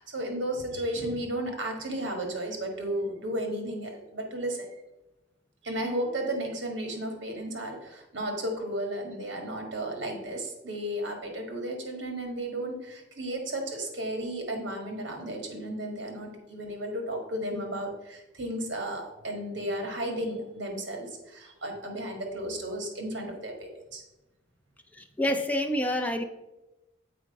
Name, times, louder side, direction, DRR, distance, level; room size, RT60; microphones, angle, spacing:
voice 1, 0.0-4.7 5.6-24.0, right 1 dB, 70° right, 3 dB, 1.6 m, -34 dB
voice 2, 24.9-26.2, left 1 dB, 10° left, 6 dB, 0.5 m, -28 dB
7.6 x 4.3 x 5.2 m, 0.97 s
head